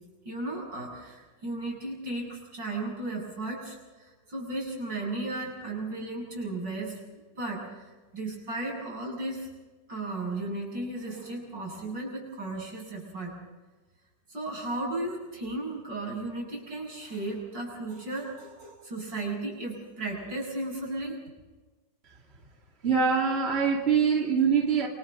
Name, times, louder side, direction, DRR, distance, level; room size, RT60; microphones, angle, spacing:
voice 1, 0.2-7.0 7.4-9.5 9.9-13.4 14.3-21.2, right 2 dB, 70° right, -1 dB, 8.2 m, -35 dB
voice 2, 22.8-24.9, right 6 dB, 35° right, 0 dB, 2.5 m, -24 dB
28.5 x 27.0 x 3.8 m, 1.2 s
omnidirectional pair, 2.0 m